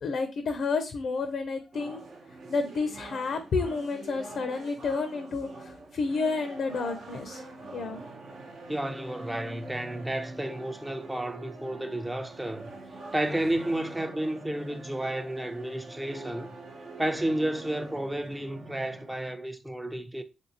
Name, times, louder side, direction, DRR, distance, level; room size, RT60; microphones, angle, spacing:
voice 1, 0.0-2.0 2.5-7.4 7.7-8.0, left 4 dB, 65° left, 0.5 m, -30 dB
sound 1, 1.7-19.4, right 2 dB, 70° right, 0.8 m, -45 dB
voice 2, 8.7-12.7 13.1-16.5 17.0-20.2, right 1 dB, 10° right, 0.4 m, -31 dB
3.4 x 2.6 x 2.8 m
cardioid pair, 90°, 0 cm